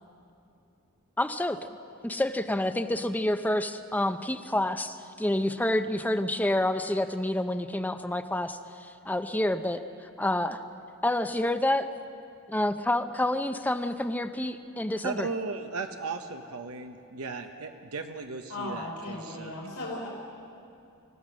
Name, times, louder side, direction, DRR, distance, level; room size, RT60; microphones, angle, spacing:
voice 1, 1.2-1.6 2.0-9.8 10.2-10.6 11.0-11.9 12.5-15.3, left 1 dB, 10° left, 9 dB, 0.6 m, -28 dB
voice 2, 15.0-19.5, right 4 dB, 85° right, 5 dB, 1.0 m, -36 dB
voice 3, 18.5-20.1, left 1 dB, 75° left, -4 dB, 3.6 m, -36 dB
27.0 x 15.5 x 6.3 m, 2.7 s
head